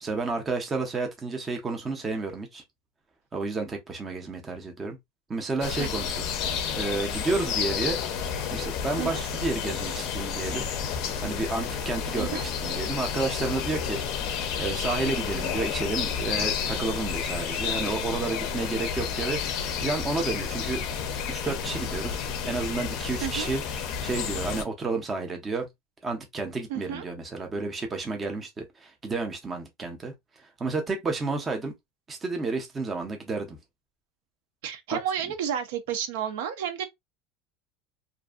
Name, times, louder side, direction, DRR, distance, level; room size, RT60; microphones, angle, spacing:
voice 1, 0.0-2.6 3.3-5.0 5.3-6.3 6.5-8.0 8.5-10.7 11.2-20.8 21.3-23.6 24.0-25.7 26.0-30.1 30.6-31.7 32.1-33.6 34.9-35.0, right 3 dB, 15° right, 0.5 m, -31 dB
sound 1, 5.6-24.6, left 7 dB, 40° left, 0.5 m, -31 dB
voice 2, 26.7-27.0 34.6-36.8, right 9 dB, 75° right, 0.6 m, -31 dB
2.5 x 2.4 x 2.3 m
supercardioid pair, 175°, 0 cm